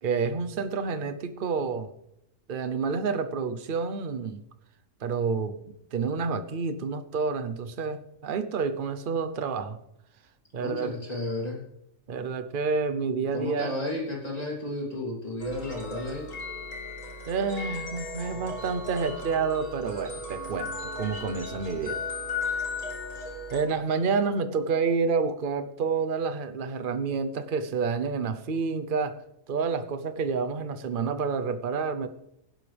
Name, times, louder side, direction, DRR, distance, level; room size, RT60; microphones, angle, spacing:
voice 1, 0.0-1.9 2.5-4.4 5.0-5.6 5.9-9.8 10.5-10.9 12.1-13.7 17.3-22.0 23.5-29.2 29.5-32.1, right 5 dB, 45° right, 9 dB, 0.9 m, -29 dB
voice 2, 10.6-11.6 13.3-16.3, left 1 dB, 30° left, -3 dB, 3.5 m, -32 dB
sound 1, 15.4-23.6, left 3 dB, 75° left, 2.7 m, -36 dB
16.5 x 11.5 x 3.4 m, 0.81 s
omnidirectional pair, 1.3 m